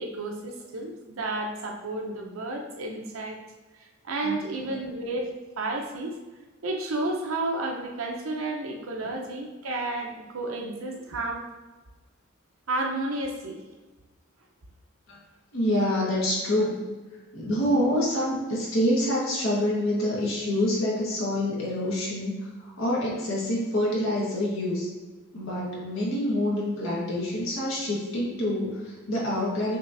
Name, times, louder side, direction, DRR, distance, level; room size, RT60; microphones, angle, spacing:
voice 1, 0.0-3.4 3.8-6.2 6.6-11.5 12.7-13.6, right 2 dB, 85° right, 1 dB, 0.8 m, -32 dB
voice 2, 15.5-16.7 17.3-22.3 22.6-24.9 25.3-29.8, left 1 dB, 80° left, -5 dB, 1.5 m, -26 dB
6.1 x 3.1 x 2.6 m, 1.3 s
head